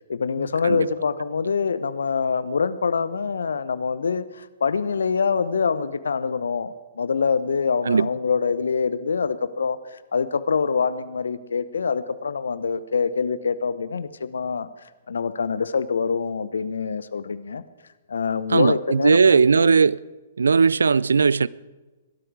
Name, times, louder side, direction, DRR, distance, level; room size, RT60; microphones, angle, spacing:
voice 1, 0.1-14.7 15.1-17.6 18.1-19.7, left 5 dB, 70° left, 0.9 m, -25 dB
voice 2, 18.5-20.0 20.4-21.5, right 5 dB, 70° right, 0.4 m, -18 dB
21.0 x 12.5 x 4.9 m
figure-of-eight pair, 115°, 0 cm